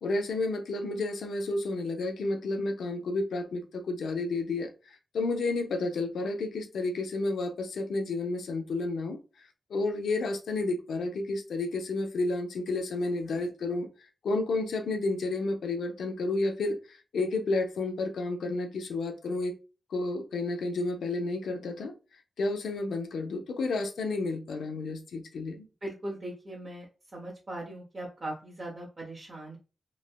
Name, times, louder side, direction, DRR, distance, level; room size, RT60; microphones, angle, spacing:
voice 1, 0.0-4.7 5.1-13.9 14.2-19.5 19.9-21.9 22.4-25.7, left 2 dB, 90° left, 0.4 m, -31 dB
voice 2, 25.8-26.9 27.1-29.6, right 1 dB, 45° right, 0.8 m, -39 dB
3.1 x 2.1 x 2.3 m
cardioid pair, 65°, 0 cm